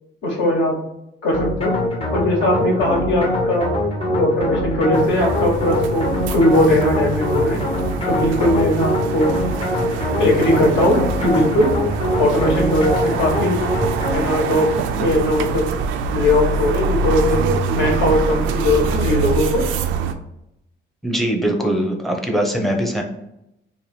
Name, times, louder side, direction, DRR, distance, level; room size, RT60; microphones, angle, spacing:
voice 1, 0.2-0.8 1.2-1.7 2.1-3.7 4.1-7.6 8.0-9.3 10.2-11.7 12.2-13.6 14.1-14.7 15.0-15.7 16.1-17.4 17.7-19.6, left 1 dB, 75° left, -2 dB, 1.3 m, -19 dB
sound 1, 1.3-14.5, left 1 dB, 30° left, 0.7 m, -23 dB
sound 2, 4.9-20.1, right 5 dB, 85° right, 0.4 m, -25 dB
voice 2, 21.0-23.0, right 1 dB, ahead, 2 dB, 0.6 m, -21 dB
2.9 x 2.5 x 4.3 m, 0.85 s
cardioid pair, 110°, 19 cm